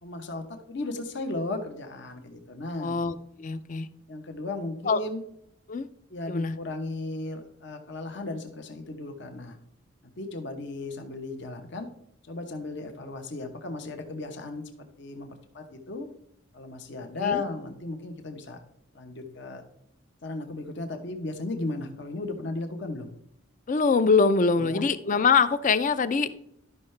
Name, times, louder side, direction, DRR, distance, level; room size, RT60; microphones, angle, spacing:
voice 1, 0.0-2.9 4.1-5.2 6.1-9.6 10.0-11.9 12.2-14.6 15.0-16.1 16.5-18.6 18.9-19.6 20.2-23.1 24.5-24.8, left 2 dB, 60° left, 6 dB, 1.0 m, -35 dB
voice 2, 2.8-3.9 4.9-5.0 5.7-5.9 6.3-6.5 17.2-17.4 23.7-26.3, left 4 dB, 40° left, 12 dB, 0.4 m, -23 dB
12.0 x 5.6 x 3.3 m, 0.75 s
head